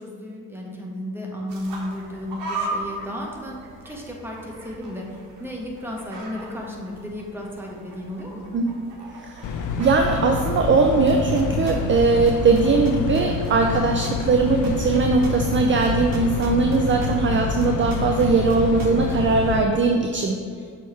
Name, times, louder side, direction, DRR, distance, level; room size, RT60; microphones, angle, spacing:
voice 1, 0.0-8.5, left 1 dB, 5° right, -2 dB, 1.4 m, -34 dB
sound 1, 1.5-16.2, right 2 dB, 70° right, 1.1 m, -39 dB
voice 2, 9.2-20.4, right 4 dB, 30° right, 3 dB, 0.5 m, -20 dB
sound 2, 9.4-19.6, left 5 dB, 45° left, 0.6 m, -27 dB
sound 3, 11.1-12.0 12.3-17.4 17.6-19.1, right 6 dB, 50° right, 1.0 m, -38 dB
6.2 x 3.6 x 4.3 m, 2.2 s
hypercardioid pair, 45°, 43 cm